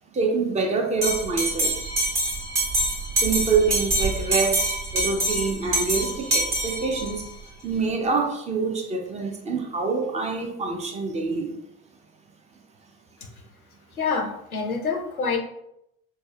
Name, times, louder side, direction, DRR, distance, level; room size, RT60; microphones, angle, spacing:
voice 1, 0.1-1.8 3.2-7.2 7.6-11.5, right 4 dB, 15° right, 3 dB, 0.4 m, -26 dB
Bell, 1.0-7.2, right 1 dB, 40° right, 1.3 m, -25 dB
voice 2, 14.0-15.4, left 5 dB, 90° left, 3 dB, 0.5 m, -26 dB
5.3 x 2.0 x 2.3 m, 0.79 s
figure-of-eight pair, 60°, 42 cm